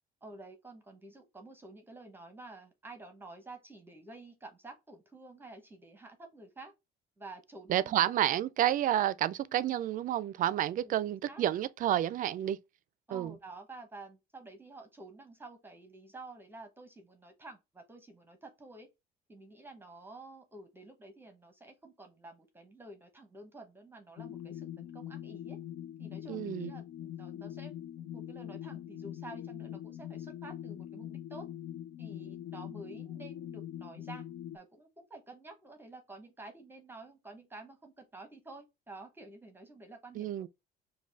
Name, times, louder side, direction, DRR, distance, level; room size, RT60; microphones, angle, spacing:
voice 1, 0.2-6.7 7.2-8.2 9.4-9.8 10.8-10.9 11.3-11.4 13.1-18.9 19.3-25.6 26.0-31.5 32.0-34.3 34.5-40.5, right 2 dB, 10° right, 0.8 m, -50 dB
voice 2, 7.7-12.6 13.1-13.3 26.3-26.7 40.1-40.5, right 12 dB, 55° right, 0.4 m, -30 dB
sound 1, 24.2-34.6, left 11 dB, 60° left, 0.4 m, -43 dB
5.2 x 2.2 x 3.3 m
cardioid pair, 110°, 17 cm